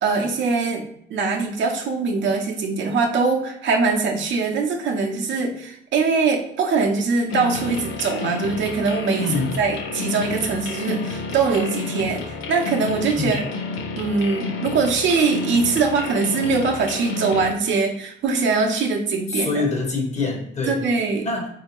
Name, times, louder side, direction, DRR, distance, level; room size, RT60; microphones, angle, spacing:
voice 1, 0.0-9.3 9.6-13.4 14.0-19.5 20.7-21.3, right 4 dB, 70° right, 1 dB, 0.8 m, -22 dB
sound 1, 7.3-17.5, left 4 dB, 85° left, 0.5 m, -31 dB
voice 2, 9.2-9.6 13.1-13.4 19.3-20.9 21.2-21.5, left 3 dB, 35° left, 1 dB, 1.1 m, -25 dB
3.3 x 2.7 x 3.0 m, 0.71 s
cardioid pair, 90°, 20 cm